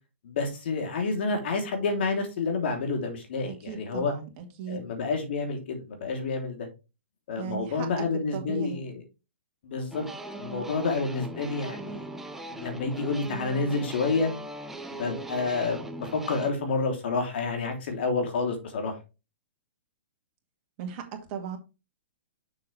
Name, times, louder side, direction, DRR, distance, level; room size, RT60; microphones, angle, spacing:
voice 1, 0.2-4.1 4.7-6.7 7.3-9.0 9.6-10.1 10.4-12.0 12.5-14.3 15.0-18.9, left 4 dB, 60° left, 3.2 m, -29 dB
voice 2, 3.4-4.9 7.4-8.1 8.3-8.9 20.8-21.6, right 7 dB, 40° right, 2.3 m, -37 dB
sound 1, 9.9-16.5, right 2 dB, 5° right, 0.9 m, -39 dB
7.0 x 6.7 x 3.4 m
hypercardioid pair, 130°, 6 cm